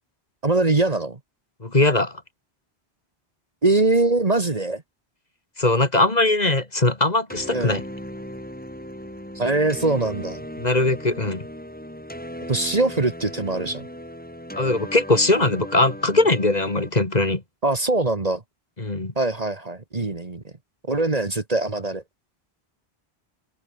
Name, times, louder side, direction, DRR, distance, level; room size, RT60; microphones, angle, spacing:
voice 1, 0.4-1.2 3.6-4.8 7.5-7.8 9.4-10.4 12.5-13.9 17.6-18.4 19.2-20.4 20.9-22.0, right 2 dB, 40° right, 1.6 m, -22 dB
voice 2, 1.6-2.2 5.6-7.8 10.6-11.4 14.6-17.4 18.8-19.1, left 2 dB, 40° left, 2.6 m, -20 dB
sound 1, 7.3-16.9, equal, 10° left, 4.9 m, -37 dB
open air
omnidirectional pair, 1.1 m